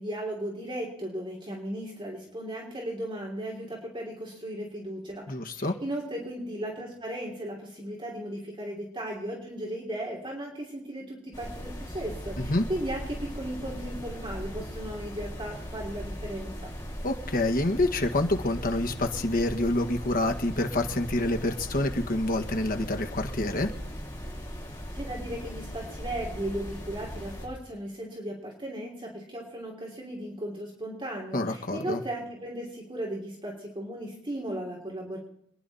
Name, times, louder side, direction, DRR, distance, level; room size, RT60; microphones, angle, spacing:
voice 1, 0.0-16.7 24.9-35.2, right 1 dB, 25° right, -2 dB, 3.1 m, -36 dB
voice 2, 5.3-5.8 12.4-12.6 17.0-23.7 31.3-32.0, left 2 dB, 45° left, 5 dB, 1.5 m, -27 dB
sound 1, 11.3-27.5, equal, 20° left, 7.9 m, -38 dB
26.5 x 10.5 x 4.2 m, 0.77 s
head